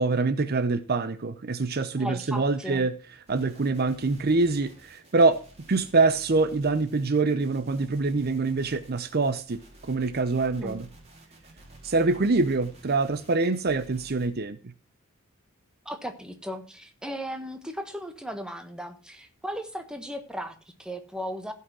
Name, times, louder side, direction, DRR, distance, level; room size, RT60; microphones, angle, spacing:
voice 1, 0.0-2.9 3.3-5.4 5.7-10.9 11.8-14.6, right 3 dB, 50° right, 0.6 m, -25 dB
voice 2, 2.0-2.9 10.6-10.8 15.8-21.5, equal, 5° right, 1.3 m, -36 dB
sound 1, 3.3-14.3, right 1 dB, 30° right, 3.3 m, -52 dB
15.0 x 5.7 x 6.1 m
head